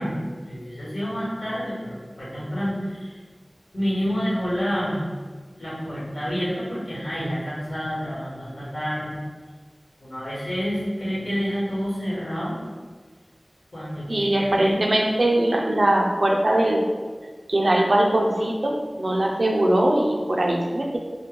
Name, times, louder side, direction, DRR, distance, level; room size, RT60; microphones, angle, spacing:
voice 1, 0.0-3.2 3.7-5.0 5.6-9.2 10.0-12.6 13.7-14.8, equal, 60° left, -8 dB, 1.3 m, -28 dB
voice 2, 14.1-16.8 17.5-21.0, right 1 dB, 70° right, 0 dB, 0.4 m, -21 dB
2.9 x 2.2 x 3.4 m, 1.5 s
wide cardioid pair, 50°, 0 cm